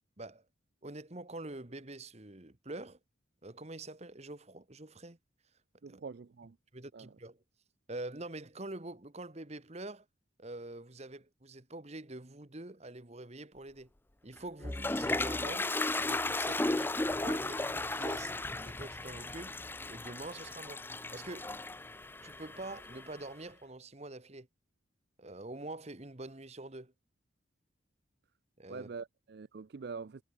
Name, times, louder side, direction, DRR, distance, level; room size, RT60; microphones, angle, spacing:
voice 1, 0.8-3.0 3.4-5.2 5.9-6.0 6.7-7.4 7.9-10.0 10.4-13.9 14.2-18.3 18.6-19.6 19.9-20.9 21.1-21.6 22.2-24.5 25.2-26.9 28.6-28.9, right 2 dB, 30° right, 1.4 m, -45 dB
voice 2, 5.8-6.6 6.9-7.1 28.7-30.2, right 5 dB, 50° right, 0.4 m, -44 dB
Toilet flush, 14.4-23.2, left 2 dB, 10° left, 0.5 m, -35 dB
head